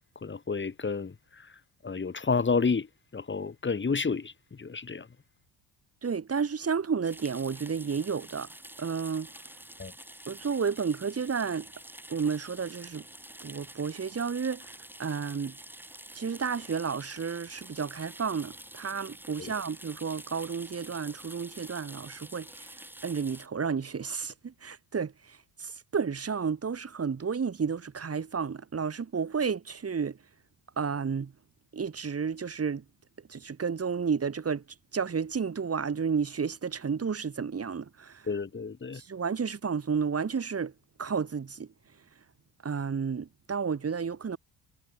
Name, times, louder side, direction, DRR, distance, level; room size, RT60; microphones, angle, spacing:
voice 1, 0.2-1.1 1.8-2.9 3.1-4.3 4.6-5.1 9.8-9.9 19.4-19.5 38.3-39.0, left 4 dB, 25° left, 4.0 m, -30 dB
voice 2, 6.0-8.5 8.8-9.3 10.3-11.7 12.1-13.0 13.4-15.6 16.1-22.8 23.0-30.2 30.8-31.3 31.7-32.8 33.3-34.6 34.9-38.3 38.9-40.7 41.0-41.7 42.6-44.4, right 6 dB, 35° right, 7.1 m, -32 dB
sound 1, 7.0-23.5, right 1 dB, 5° right, 5.2 m, -48 dB
cardioid pair, 90°, 42 cm